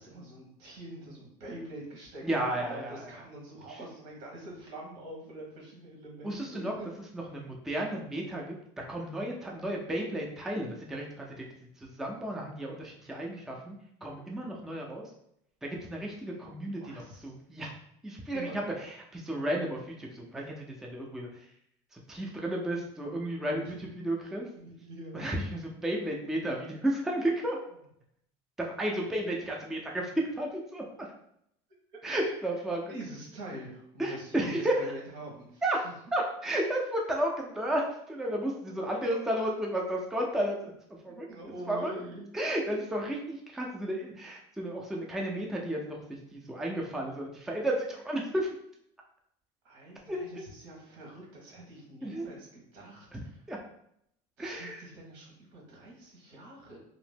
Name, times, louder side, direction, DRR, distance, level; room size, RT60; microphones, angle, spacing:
voice 1, 0.0-6.9 16.3-16.4 16.8-17.3 18.3-18.7 23.6-23.8 24.5-25.4 32.2-32.3 32.9-35.9 41.1-42.3 49.6-53.4 54.4-56.8, right 1 dB, 90° right, -2 dB, 1.3 m, -45 dB
voice 2, 2.2-3.0 6.2-6.7 7.1-11.5 11.8-13.8 14.0-15.0 15.6-17.7 18.0-21.3 21.9-24.5 25.1-27.6 28.6-31.1 32.0-32.8 34.0-34.7 35.6-35.8 36.1-40.7 41.0-41.3 41.7-41.9 42.3-46.0 46.3-48.5 50.1-50.2 52.0-52.3 53.1-53.2 53.5-53.6 54.4-54.9, right 1 dB, 5° right, -1 dB, 0.3 m, -33 dB
2.8 x 2.0 x 3.3 m, 0.73 s
cardioid pair, 150°, 14 cm